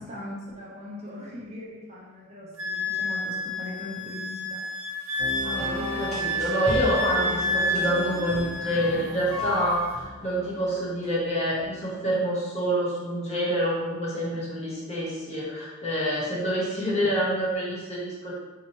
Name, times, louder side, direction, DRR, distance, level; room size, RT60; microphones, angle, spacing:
voice 1, 0.0-4.6 8.6-8.9, left 2 dB, 35° right, -6 dB, 0.9 m, -40 dB
Wind instrument woodwind instrument, 2.6-9.0 9.3-9.9, left 1 dB, 65° right, 0.5 m, -30 dB
sound 1, 5.2-11.6, equal, ahead, 1.0 m, -36 dB
voice 2, 5.4-18.3, equal, 35° left, -6 dB, 1.0 m, -27 dB
4.3 x 2.9 x 3.0 m, 1.2 s
head